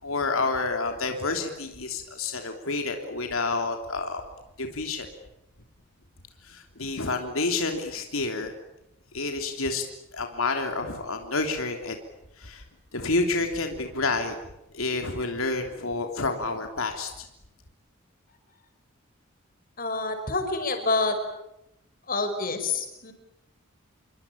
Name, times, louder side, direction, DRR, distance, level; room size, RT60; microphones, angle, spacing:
voice 1, 0.0-4.2 4.6-5.1 6.4-8.5 9.1-9.8 10.1-12.0 12.4-12.6 12.9-14.3 14.7-17.3, left 3 dB, 85° left, 4 dB, 3.3 m, -29 dB
voice 2, 19.8-21.2 22.1-23.1, left 3 dB, 45° left, 7 dB, 5.7 m, -27 dB
28.5 x 23.5 x 8.9 m, 0.85 s
head